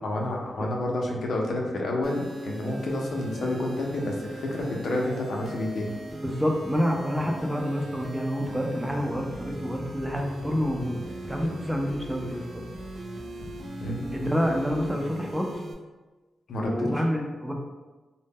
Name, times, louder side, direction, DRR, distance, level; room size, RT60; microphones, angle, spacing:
voice 1, 0.0-6.0 13.8-14.1 16.5-17.0, left 1 dB, 70° left, -1 dB, 0.4 m, -29 dB
sound 1, 2.0-15.7, right 1 dB, 75° right, 0.4 m, -39 dB
voice 2, 6.2-12.6 14.1-15.5 16.6-17.5, equal, 5° right, 0 dB, 0.4 m, -28 dB
2.0 x 2.0 x 3.4 m, 1.2 s
cardioid pair, 80°, 0 cm